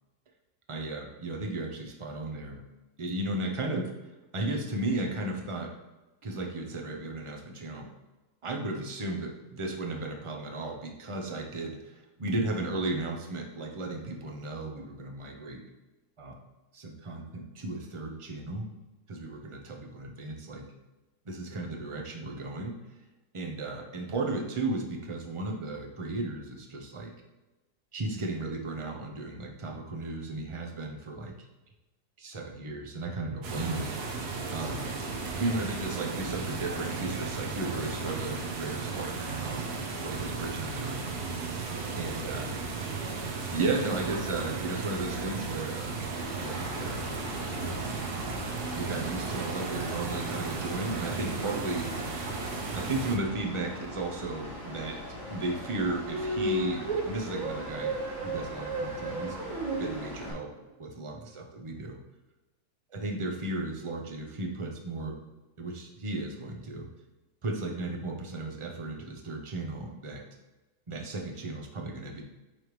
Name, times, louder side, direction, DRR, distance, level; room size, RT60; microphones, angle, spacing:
voice 1, 0.7-2.6 3.0-3.9 4.3-5.7 6.2-7.9 8.4-15.6 16.2-16.3 16.7-18.7 19.1-20.6 21.2-22.8 23.3-27.1 27.9-31.3 32.2-33.9 34.5-34.9 35.3-41.5 42.0-42.6 43.5-45.9 46.4-47.0 47.6-47.8 48.7-52.0 52.7-55.0 55.3-59.5 59.8-60.5 60.8-62.0 62.9-65.2 65.6-66.9 67.4-70.3 70.9-72.2, right 2 dB, 30° right, 1 dB, 0.6 m, -35 dB
sound 1, 33.4-53.2, right 4 dB, 90° right, 1.5 m, -35 dB
Mechanical fan, 46.2-60.3, left 1 dB, 30° left, 1.9 m, -42 dB
sound 2, 56.1-60.5, right 2 dB, 65° right, 1.3 m, -33 dB
9.7 x 3.5 x 3.2 m, 1.1 s
omnidirectional pair, 1.6 m